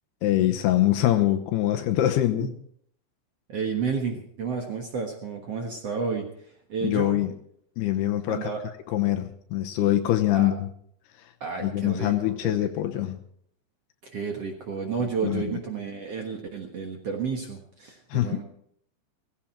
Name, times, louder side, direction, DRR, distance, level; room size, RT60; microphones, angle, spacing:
voice 1, 0.2-2.5 6.8-7.3 7.8-8.5 8.9-10.7 11.6-13.2 15.2-15.4 18.1-18.4, left 13 dB, 75° left, 7 dB, 2.7 m, -24 dB
voice 2, 3.5-7.2 8.3-8.6 10.3-10.5 11.4-13.0 14.0-18.4, right 5 dB, 65° right, 2 dB, 1.5 m, -32 dB
17.5 x 16.0 x 4.5 m, 0.66 s
omnidirectional pair, 5.2 m